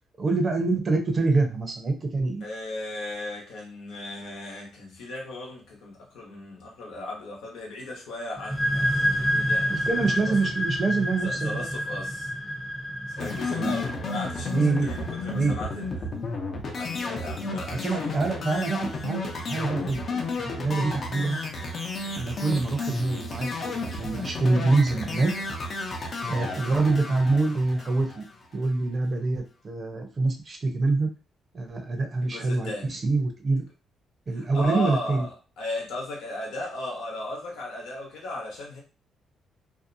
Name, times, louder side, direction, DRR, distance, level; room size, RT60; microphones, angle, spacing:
voice 1, 0.2-2.4 9.7-11.7 13.6-13.7 14.5-14.9 15.3-15.6 17.7-21.4 22.2-25.3 26.3-28.3 28.5-31.1 31.5-33.7 34.3-35.3, right 3 dB, 40° right, 0.7 m, -26 dB
voice 2, 2.4-10.3 11.2-12.3 13.1-16.1 16.7-18.3 32.2-33.0 34.3-38.8, left 2 dB, 85° left, 1.0 m, -36 dB
sound 1, 8.4-15.8, equal, 5° right, 0.6 m, -29 dB
sound 2, 13.2-28.5, left 3 dB, 50° left, 0.6 m, -32 dB
2.7 x 2.1 x 2.6 m
cardioid pair, 90°, 0 cm